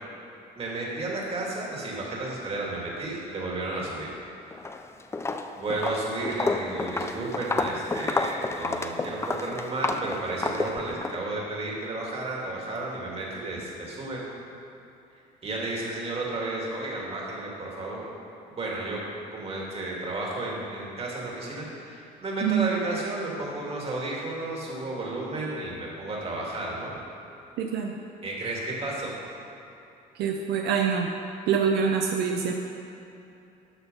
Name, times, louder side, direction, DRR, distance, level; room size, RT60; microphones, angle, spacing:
voice 1, 0.6-4.1 5.6-14.2 15.4-18.1 18.5-19.0 19.3-26.9 28.2-29.1, right 2 dB, 35° right, -3 dB, 2.3 m, -32 dB
Walk footsteps, 4.5-4.8 5.1-11.2, left 3 dB, 15° left, 0.4 m, -30 dB
voice 2, 27.6-27.9 30.2-31.1 31.5-32.5, right 7 dB, 80° right, 2 dB, 0.6 m, -25 dB
12.5 x 4.5 x 5.5 m, 2.8 s
cardioid pair, 110°, 17 cm